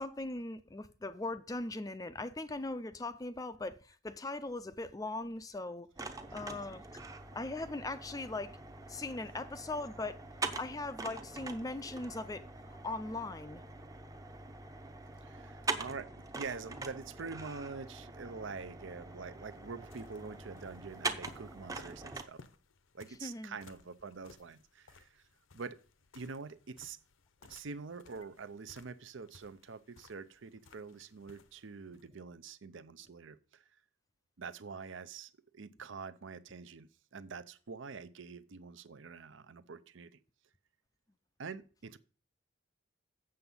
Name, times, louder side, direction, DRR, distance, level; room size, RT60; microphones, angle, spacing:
voice 1, 0.0-5.9 6.3-7.0 7.3-8.5 8.9-13.6 23.2-23.6, left 2 dB, 15° left, 0.4 m, -40 dB
sound 1, 6.0-22.2, right 3 dB, 15° right, 0.7 m, -43 dB
voice 2, 15.2-22.4 22.9-25.2 25.5-25.8 26.1-27.0 27.4-33.6 34.4-40.2 41.4-42.0, right 4 dB, 60° right, 0.6 m, -46 dB
sound 2, 19.2-32.1, left 4 dB, 70° left, 0.8 m, -61 dB
7.8 x 6.9 x 5.4 m
head